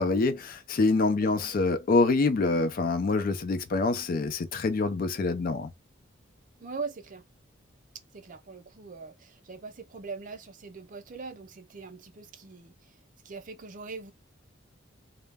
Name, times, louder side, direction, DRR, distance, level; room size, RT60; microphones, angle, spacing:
voice 1, 0.0-5.7, left 3 dB, 45° left, 0.4 m, -26 dB
voice 2, 6.6-7.3 8.1-13.0 13.2-14.1, right 4 dB, 40° right, 0.5 m, -41 dB
2.2 x 2.0 x 3.3 m
head